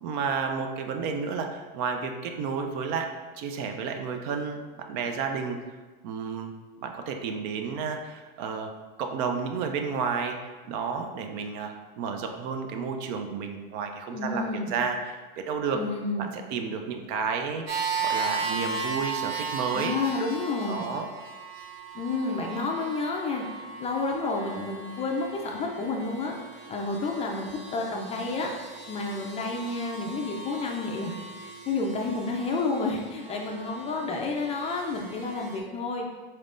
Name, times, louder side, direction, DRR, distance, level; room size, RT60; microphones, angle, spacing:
voice 1, 0.0-3.1 3.4-5.6 6.0-6.5 6.8-8.7 9.0-15.8 16.2-20.0 20.7-21.1, right 5 dB, 55° right, 5 dB, 0.5 m, -31 dB
voice 2, 14.1-14.7 15.7-16.3 19.7-20.8 21.9-23.4 23.8-26.3 26.7-28.5 28.9-36.1, left 3 dB, 20° left, 1 dB, 0.4 m, -30 dB
sound 1, 17.7-35.6, right 4 dB, 85° right, 0.9 m, -37 dB
4.2 x 3.4 x 2.5 m, 1.3 s
supercardioid pair, 120°, 29 cm